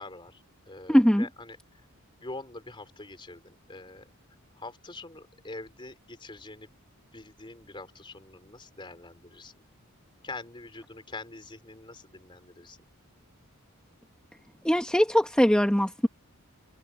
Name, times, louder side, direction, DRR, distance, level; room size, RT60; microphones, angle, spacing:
voice 1, 0.0-1.6 2.2-4.1 4.6-6.8 7.1-9.7 10.2-12.8, left 2 dB, 20° left, 3.5 m, -44 dB
voice 2, 0.9-1.3 14.6-16.1, equal, 5° left, 1.2 m, -21 dB
head